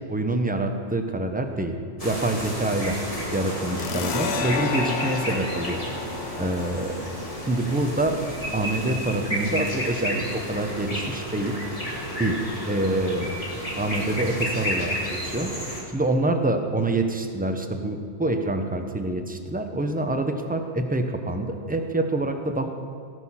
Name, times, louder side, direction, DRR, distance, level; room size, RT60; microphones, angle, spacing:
voice 1, 0.1-1.7 2.0-3.0 3.3-5.8 6.4-7.0 7.5-8.2 8.5-11.6 12.2-12.4 12.7-13.4 13.7-15.5 15.9-22.7, right 2 dB, 10° right, 5 dB, 0.7 m, -26 dB
sound 1, 2.0-15.8, equal, 30° left, 2.4 m, -32 dB
sound 2, 3.8-11.0, left 5 dB, 70° left, 1.0 m, -33 dB
18.0 x 6.4 x 5.7 m, 2.2 s
omnidirectional pair, 1.1 m